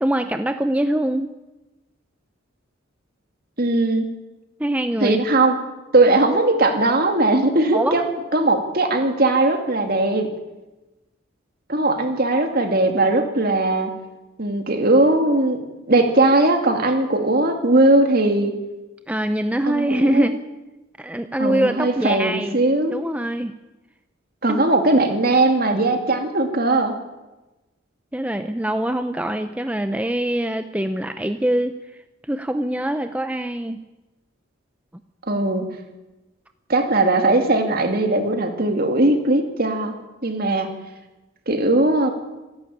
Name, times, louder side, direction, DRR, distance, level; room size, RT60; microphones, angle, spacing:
voice 1, 0.0-1.3 4.6-5.2 7.7-8.0 19.1-20.4 21.0-22.6 22.9-23.5 24.5-24.7 28.1-31.7 32.3-33.8, right 1 dB, 5° right, 8 dB, 0.6 m, -23 dB
voice 2, 3.6-4.1 5.0-5.6 5.9-8.0 8.3-10.3 11.7-13.9 14.4-15.6 15.9-18.5 19.6-20.4 21.4-23.0 24.4-26.9 35.3-35.7 36.7-39.9 40.2-40.7 41.5-42.1, right 2 dB, 45° right, 5 dB, 2.6 m, -19 dB
26.5 x 11.5 x 8.8 m, 1.1 s
head